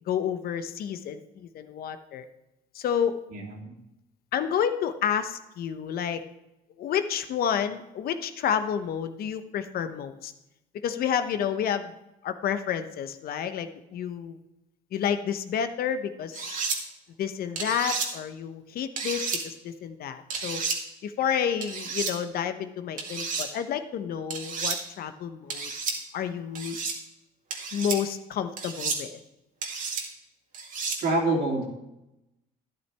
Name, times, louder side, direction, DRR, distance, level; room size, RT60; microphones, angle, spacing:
voice 1, 0.1-2.2 2.7-3.2 4.3-6.2 6.8-10.3 10.8-11.9 12.2-14.4 14.9-16.6 17.2-20.6 21.0-25.7 26.1-26.8 27.7-29.2, left 8 dB, 65° left, 10 dB, 0.9 m, -30 dB
voice 2, 3.3-3.7 31.0-31.6, right 2 dB, 70° right, -2 dB, 3.0 m, -26 dB
sound 1, 16.3-16.8 17.5-18.1 19.0-19.4 20.3-20.8 21.6-22.1 23.0-23.5 24.3-24.8 25.5-26.0 26.5-27.0 27.5-28.0 28.6-29.0 29.6-30.0 30.5-31.0, right 4 dB, 50° right, 2.0 m, -31 dB
12.0 x 10.5 x 3.4 m, 0.91 s
cardioid pair, 110°, 17 cm